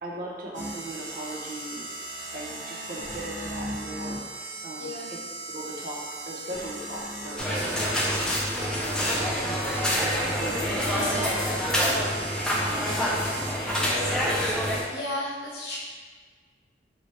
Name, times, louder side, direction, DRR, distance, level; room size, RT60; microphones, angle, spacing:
voice 1, 0.0-1.9 2.3-5.2 5.5-9.7 10.0-12.3 12.9-14.0, right 1 dB, 50° right, -3 dB, 0.7 m, -39 dB
sound 1, 0.5-14.0, right 2 dB, 85° right, 0.7 m, -38 dB
voice 2, 4.8-5.1 14.9-15.8, left 1 dB, 60° left, -5 dB, 1.0 m, -34 dB
sound 2, 7.4-14.8, equal, 5° left, 0.4 m, -26 dB
2.9 x 2.8 x 4.4 m, 1.5 s
head